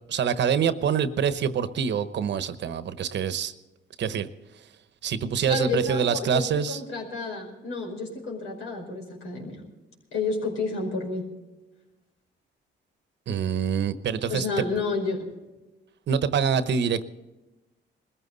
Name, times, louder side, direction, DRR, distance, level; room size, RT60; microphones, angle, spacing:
voice 1, 0.1-3.5 4.0-4.3 5.0-6.8 13.3-14.5 16.1-17.1, right 7 dB, 65° right, 13 dB, 1.0 m, -25 dB
voice 2, 5.4-9.6 10.1-11.2 14.3-15.3, left 3 dB, 90° left, -1 dB, 5.2 m, -30 dB
21.0 x 15.0 x 4.0 m, 1.1 s
cardioid pair, 90°, 20 cm